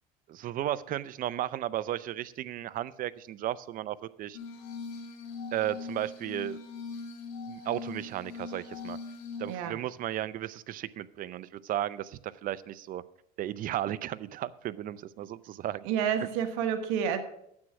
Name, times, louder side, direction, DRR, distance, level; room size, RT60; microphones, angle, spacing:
voice 1, 0.3-4.4 5.5-6.6 7.5-9.0 9.4-13.0 13.4-15.9, right 12 dB, 45° right, 17 dB, 0.5 m, -34 dB
Glass, 4.3-9.6, left 4 dB, 90° left, 2.4 m, -41 dB
voice 2, 9.5-9.8 15.8-17.2, right 8 dB, 80° right, 8 dB, 1.3 m, -29 dB
9.6 x 7.5 x 5.9 m, 0.75 s
supercardioid pair, 105°, 19 cm